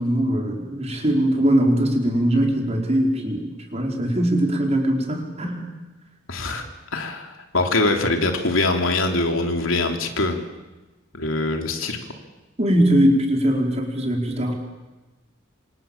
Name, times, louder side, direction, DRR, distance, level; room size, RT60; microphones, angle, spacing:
voice 1, 0.0-3.5 3.7-5.7 12.6-14.5, right 1 dB, 30° right, 1 dB, 4.9 m, -21 dB
voice 2, 6.3-6.6 6.9-10.4 11.1-12.0, left 2 dB, 80° left, 4 dB, 3.3 m, -23 dB
27.5 x 26.0 x 7.3 m, 1.1 s
head